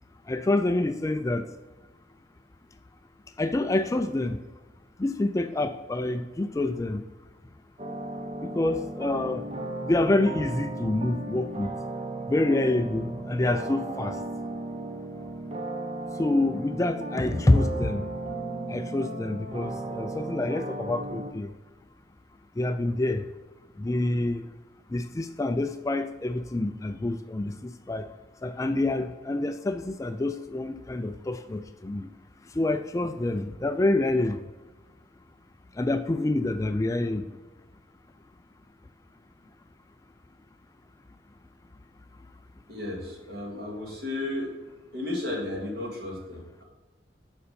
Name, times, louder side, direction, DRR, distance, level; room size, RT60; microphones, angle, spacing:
voice 1, 0.3-1.5 3.4-4.4 5.0-7.0 8.4-9.5 9.8-11.7 12.3-14.2 16.1-18.1 18.7-21.5 22.6-23.3 23.8-24.5 24.9-28.1 28.4-32.1 32.5-34.5 35.7-37.3, left 2 dB, 20° left, 9 dB, 0.3 m, -27 dB
sound 1, 7.8-21.3, right 2 dB, 35° right, 0.7 m, -35 dB
voice 2, 42.7-44.6 44.9-46.6, left 2 dB, 60° right, -1 dB, 2.4 m, -34 dB
6.9 x 5.3 x 5.3 m, 1.2 s
head